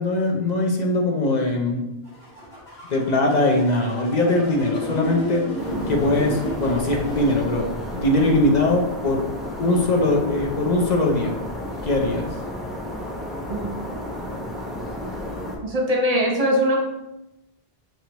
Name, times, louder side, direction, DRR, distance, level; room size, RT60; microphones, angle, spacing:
voice 1, 0.0-1.9 2.9-5.4 5.9-9.2 9.6-11.4 11.8-12.3, left 2 dB, 45° left, 0 dB, 0.8 m, -21 dB
sound 1, 2.1-7.3, right 1 dB, 90° left, 2.0 m, -31 dB
sound 2, 5.6-15.6, left 1 dB, ahead, 0.6 m, -32 dB
voice 2, 15.6-16.8, equal, 40° right, -1 dB, 0.9 m, -21 dB
5.6 x 3.2 x 3.0 m, 0.93 s
omnidirectional pair, 1.0 m